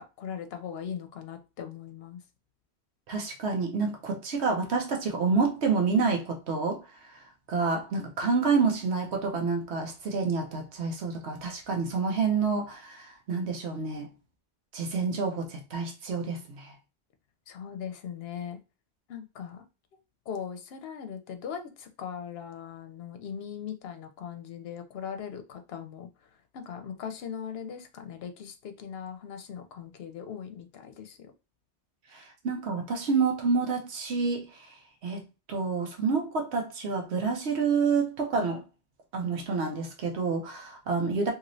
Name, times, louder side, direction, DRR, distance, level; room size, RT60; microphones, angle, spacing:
voice 1, 0.0-2.2 17.5-18.6 19.1-19.6 20.3-26.1 26.5-31.3, left 8 dB, 65° left, 0.8 m, -39 dB
voice 2, 3.1-7.2 7.5-14.1 14.7-16.7 32.1-34.7 35.0-38.6 39.1-41.3, right 4 dB, 75° right, 1.0 m, -28 dB
3.0 x 2.8 x 2.6 m
omnidirectional pair, 1.1 m